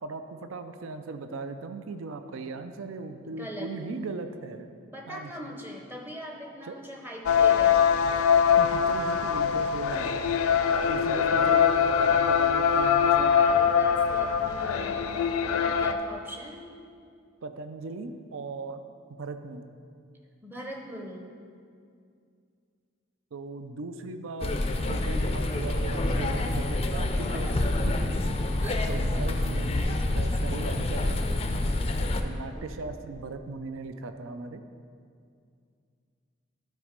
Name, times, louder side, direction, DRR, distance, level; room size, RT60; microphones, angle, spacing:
voice 1, 0.0-4.7 5.1-5.6 6.7-6.8 8.6-10.2 10.9-11.8 12.1-13.3 17.4-18.8 19.1-19.7 23.3-28.2 28.9-31.2 31.5-31.7 32.2-34.6, right 3 dB, 75° right, 8 dB, 0.5 m, -38 dB
voice 2, 3.2-3.9 4.9-8.0 13.0-16.7 20.4-21.3 27.2-27.5 28.6-29.2 32.5-33.1 33.4-33.5, equal, 10° right, 1 dB, 0.6 m, -41 dB
sound 1, 7.3-15.9, left 7 dB, 90° left, 0.4 m, -23 dB
sound 2, 24.4-32.2, left 2 dB, 30° left, 0.4 m, -27 dB
11.5 x 4.3 x 5.1 m, 2.3 s
head